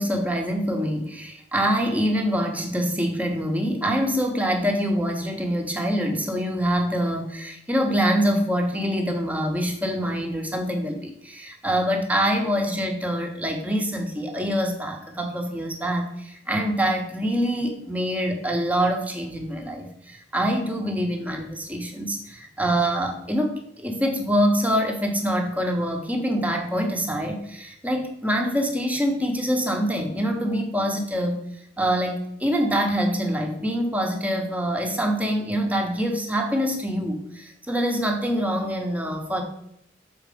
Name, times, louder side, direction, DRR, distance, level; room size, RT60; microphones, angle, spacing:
voice 1, 0.0-31.4 31.8-39.4, equal, 10° right, 3 dB, 1.0 m, -25 dB
6.5 x 4.3 x 5.0 m, 0.75 s
head